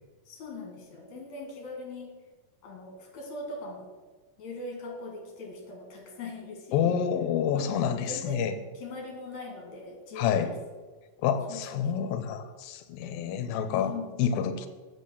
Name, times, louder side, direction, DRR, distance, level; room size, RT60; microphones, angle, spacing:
voice 1, 0.3-2.1 2.6-3.9 4.4-7.0 7.5-8.5 8.7-10.5 11.5-12.1 13.7-14.1, left 3 dB, 55° left, 1 dB, 3.0 m, -41 dB
voice 2, 6.7-8.5 10.2-10.5 11.2-13.9 14.2-14.7, left 8 dB, 85° left, 10 dB, 2.5 m, -28 dB
8.4 x 5.9 x 6.8 m, 1.3 s
omnidirectional pair, 4.1 m